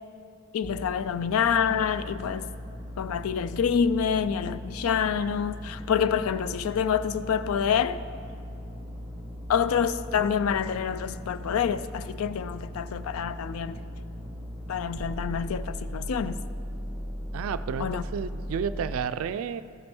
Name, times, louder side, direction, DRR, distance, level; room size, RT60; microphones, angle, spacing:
voice 1, 0.5-2.5 3.0-8.0 9.5-13.8 14.7-16.4 17.8-18.0, left 7 dB, 80° left, 0.4 m, -27 dB
sound 1, 0.6-19.0, equal, 5° right, 1.2 m, -38 dB
voice 2, 17.3-19.6, right 7 dB, 75° right, 0.3 m, -31 dB
14.0 x 5.3 x 4.5 m
head